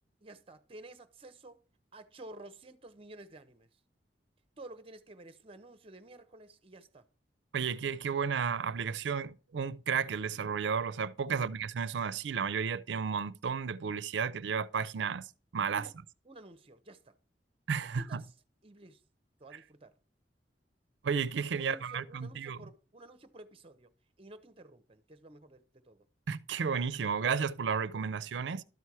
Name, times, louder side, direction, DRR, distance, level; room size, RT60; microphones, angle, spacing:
voice 1, 0.2-1.6 1.9-3.7 4.6-7.1 10.3-10.4 11.3-11.5 15.7-15.9 16.3-17.2 17.9-18.3 18.6-19.0 19.4-19.9 21.6-23.9 24.2-26.1, right 2 dB, 35° right, 0.7 m, -52 dB
voice 2, 7.5-15.3 15.5-15.9 17.7-18.2 21.0-22.6 26.3-28.6, right 6 dB, 75° right, 0.4 m, -33 dB
12.0 x 4.3 x 4.7 m
head